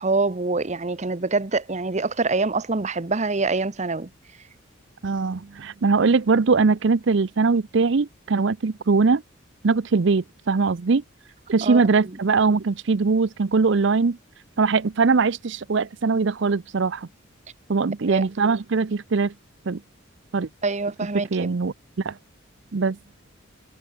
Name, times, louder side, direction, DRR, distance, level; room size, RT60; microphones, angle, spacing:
voice 1, 0.0-4.1 11.6-11.8 18.1-18.3 20.6-21.5, right 3 dB, 35° right, 0.9 m, -25 dB
voice 2, 5.0-9.2 9.6-11.0 11.5-14.2 14.6-17.1 17.7-19.3 19.7-19.8 20.3-20.5 21.1-22.2 22.7-23.0, right 4 dB, 60° right, 0.6 m, -21 dB
head